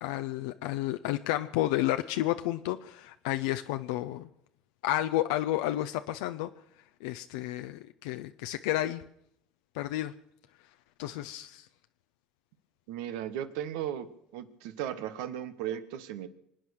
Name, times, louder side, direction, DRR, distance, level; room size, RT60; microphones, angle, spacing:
voice 1, 0.0-4.3 4.8-6.5 7.0-9.0 9.8-10.1 11.0-11.7, left 14 dB, 90° left, 8 dB, 0.6 m, -31 dB
voice 2, 12.9-16.3, right 10 dB, 85° right, 12 dB, 1.3 m, -36 dB
25.0 x 9.0 x 6.4 m, 0.74 s
supercardioid pair, 90°, 2 cm